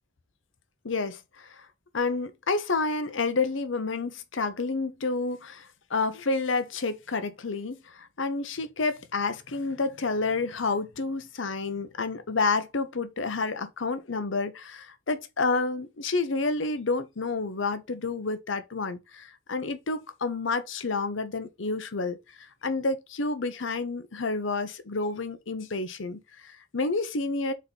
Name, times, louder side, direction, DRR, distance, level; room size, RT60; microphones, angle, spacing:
voice 1, 0.8-1.7 1.9-27.5, left 3 dB, 75° left, 0.9 m, -29 dB
4.3 x 4.2 x 5.2 m
head